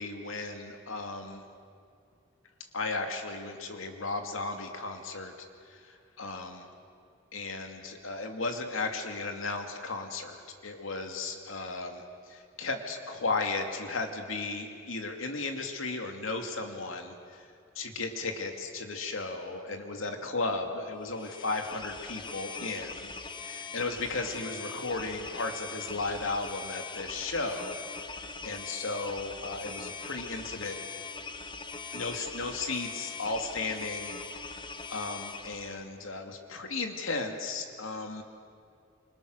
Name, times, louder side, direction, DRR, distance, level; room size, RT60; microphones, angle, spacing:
voice 1, 0.0-1.4 2.7-6.7 7.3-17.5 17.7-23.1 23.4-27.8 28.2-30.8 31.9-34.1 34.9-38.2, left 3 dB, 85° left, 4 dB, 2.4 m, -35 dB
sound 1, 21.0-35.8, left 4 dB, 25° left, 1.0 m, -41 dB
27.0 x 24.5 x 6.5 m, 2.3 s
head